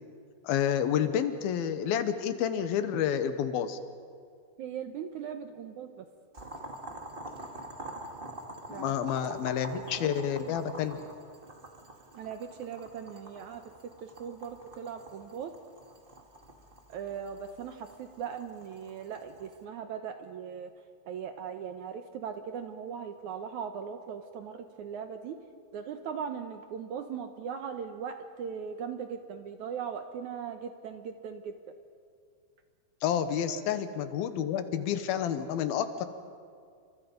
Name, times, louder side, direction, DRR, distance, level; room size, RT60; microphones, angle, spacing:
voice 1, 0.4-3.8 8.7-11.0 33.0-36.1, left 9 dB, 80° left, 10 dB, 2.9 m, -29 dB
voice 2, 4.6-6.1 8.7-10.5 12.1-15.5 16.9-20.7 21.1-25.4 25.7-31.6 33.4-33.7, right 7 dB, 70° right, 7 dB, 1.9 m, -39 dB
Boiling, 6.3-19.6, right 1 dB, 25° right, 1.2 m, -46 dB
30.0 x 25.5 x 5.3 m, 2.3 s
omnidirectional pair, 4.4 m